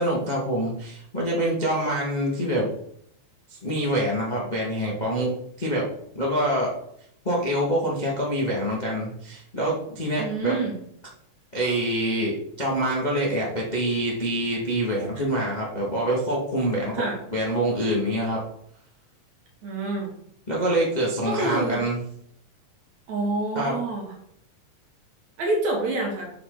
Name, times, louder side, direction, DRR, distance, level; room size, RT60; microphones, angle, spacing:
voice 1, 0.0-2.7 3.5-5.9 6.1-6.7 7.2-10.6 11.5-17.0 17.3-18.4 20.5-22.0 23.5-23.8, right 1 dB, 25° left, -4 dB, 1.0 m, -25 dB
voice 2, 10.2-10.8 16.9-17.2 19.6-20.1 21.2-21.8 23.1-24.1 25.4-26.3, right 2 dB, 55° right, -1 dB, 3.3 m, -27 dB
8.5 x 6.6 x 3.9 m, 0.69 s
omnidirectional pair, 3.9 m